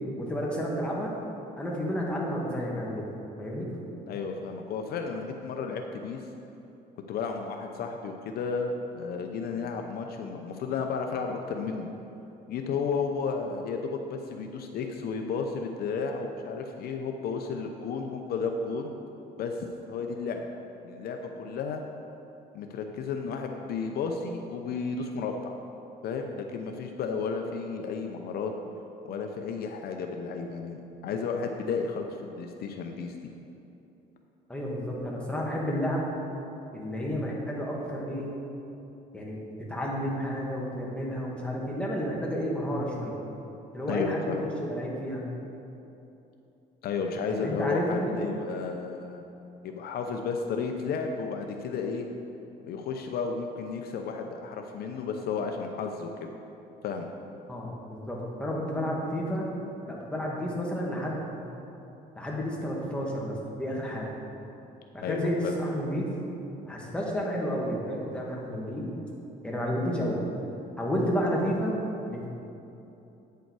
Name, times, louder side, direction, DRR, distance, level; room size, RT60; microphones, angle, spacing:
voice 1, 0.2-1.1 1.6-3.1 3.4-3.7 34.5-36.1 36.7-38.3 39.1-43.2 43.7-45.2 47.3-48.2 57.5-59.5 59.9-61.4 62.2-64.1 64.9-66.1 66.6-68.9 69.4-70.2 70.8-71.8 72.1-72.3, equal, 5° left, -3 dB, 1.8 m, -31 dB
voice 2, 4.1-6.2 7.1-11.9 12.5-18.9 19.4-20.4 20.8-21.8 22.5-25.6 26.0-28.5 29.0-33.2 43.9-44.4 46.8-49.2 49.6-52.1 52.6-56.3 56.8-57.1 65.0-65.5, left 5 dB, 65° left, 4 dB, 0.7 m, -33 dB
9.1 x 6.9 x 4.7 m, 2.9 s
cardioid pair, 110°, 17 cm